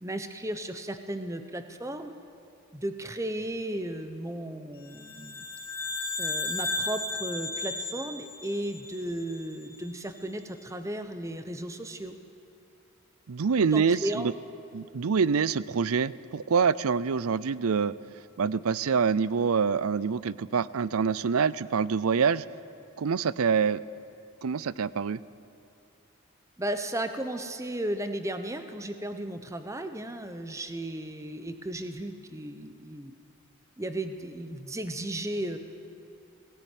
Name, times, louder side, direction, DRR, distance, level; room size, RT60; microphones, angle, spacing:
voice 1, 0.0-2.1 2.7-5.4 6.2-12.2 13.6-14.3 26.6-33.1 33.8-35.6, right 1 dB, 15° right, 8 dB, 0.9 m, -35 dB
sound 1, 4.9-9.4, left 2 dB, 10° left, 2.8 m, -34 dB
voice 2, 13.3-14.3 14.7-17.9 18.4-22.4 23.0-23.8 24.4-25.2, right 6 dB, 80° right, 19 dB, 0.5 m, -26 dB
18.0 x 16.5 x 9.2 m, 2.5 s
head